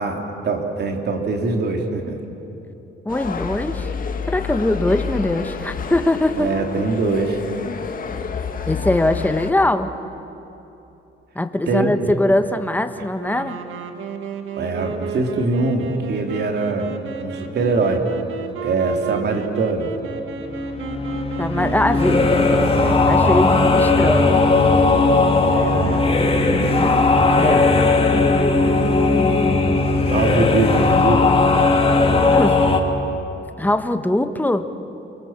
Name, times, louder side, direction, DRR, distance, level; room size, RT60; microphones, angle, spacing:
voice 1, 0.0-2.2 6.3-7.4 11.7-12.1 14.6-16.9 17.2-18.0 18.6-19.9 25.5-26.0 30.1-31.3, right 3 dB, 55° right, 3 dB, 3.3 m, -22 dB
voice 2, 3.0-3.9 4.3-6.5 8.7-9.9 11.3-13.6 21.4-22.2 23.0-24.4 27.3-27.7 32.3-32.6 33.6-34.7, left 1 dB, 10° left, 9 dB, 1.4 m, -21 dB
sound 1, 3.1-9.5, left 6 dB, 45° left, 1.9 m, -29 dB
sound 2, 13.2-25.0, right 6 dB, 80° right, 1.9 m, -33 dB
sound 3, 20.3-32.8, left 3 dB, 30° left, 2.5 m, -17 dB
29.5 x 22.5 x 7.5 m, 2.9 s
cardioid pair, 90°, 20 cm